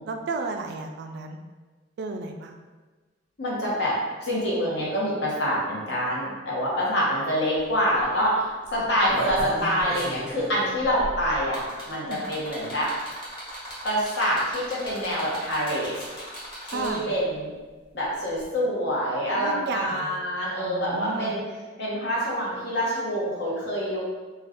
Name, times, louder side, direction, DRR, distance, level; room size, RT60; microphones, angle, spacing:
voice 1, 0.1-1.4 2.0-2.6 8.7-8.8 11.9-12.2 16.7-17.1 19.4-20.2 20.6-21.3, right 3 dB, 60° right, 5 dB, 0.3 m, -33 dB
voice 2, 3.4-12.9 13.8-16.0 16.7-17.5 17.9-21.4 21.8-24.0, equal, 65° left, -6 dB, 1.0 m, -26 dB
sound 1, 7.6-7.7 8.0-8.2 8.8-17.2 18.4-18.5, equal, 30° left, 1.2 m, -38 dB
2.5 x 2.3 x 3.5 m, 1.3 s
head